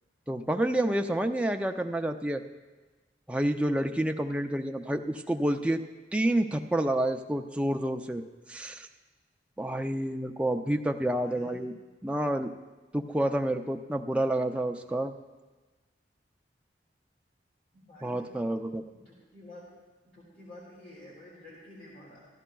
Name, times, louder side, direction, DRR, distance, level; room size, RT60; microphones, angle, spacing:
voice 1, 0.3-2.4 3.3-5.8 6.1-8.2 8.5-8.9 9.6-11.7 12.0-12.5 12.9-15.1 18.0-18.8, right 1 dB, 5° right, 5 dB, 0.4 m, -29 dB
voice 2, 11.2-11.7 17.7-18.4 18.9-19.7 20.0-22.3, left 1 dB, 55° left, -8 dB, 2.9 m, -50 dB
14.5 x 12.5 x 2.3 m, 1.3 s
head